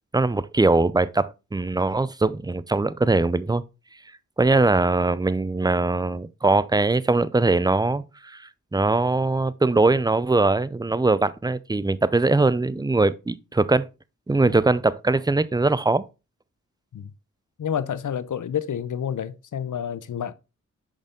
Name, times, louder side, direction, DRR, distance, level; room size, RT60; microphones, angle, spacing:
voice 1, 0.1-3.6 4.4-8.4 8.7-13.9 14.3-16.0, right 3 dB, 15° right, 0.5 m, -21 dB
voice 2, 17.6-20.3, left 8 dB, 65° left, 0.6 m, -29 dB
6.4 x 5.2 x 3.8 m
cardioid pair, 50°, 33 cm